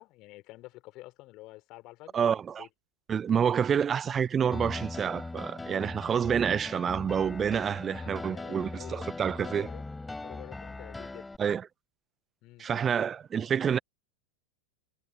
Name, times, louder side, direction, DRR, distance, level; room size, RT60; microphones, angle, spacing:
voice 1, 0.0-2.7 7.8-11.3 12.4-12.9, left 19 dB, 40° left, 4.2 m, -50 dB
voice 2, 2.1-2.7 3.1-9.7 11.4-11.7 12.6-13.8, right 7 dB, 20° right, 0.6 m, -28 dB
Piano, 4.5-11.4, left 2 dB, 10° left, 3.5 m, -40 dB
figure-of-eight pair, 90°, 0 cm